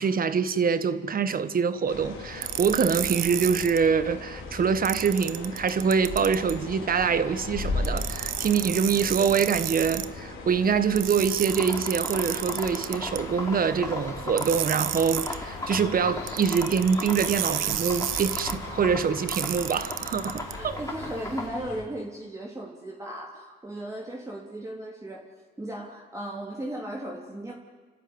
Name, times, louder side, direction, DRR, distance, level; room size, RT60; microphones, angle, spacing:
voice 1, 0.0-20.8, right 6 dB, 45° right, 12 dB, 1.4 m, -25 dB
sound 1, 1.9-21.8, left 3 dB, 85° left, 4.2 m, -38 dB
sound 2, 2.4-3.8 4.9-6.6 7.8-10.1 11.0-13.2 14.4-15.4 16.3-18.5 19.3-20.5, right 14 dB, 90° right, 0.8 m, -32 dB
sound 3, 11.4-21.5, left 2 dB, 15° left, 3.4 m, -38 dB
voice 2, 20.2-25.2 25.6-27.5, right 1 dB, 15° right, -2 dB, 3.3 m, -36 dB
30.0 x 12.5 x 9.7 m, 1.4 s
cardioid pair, 90°, 20 cm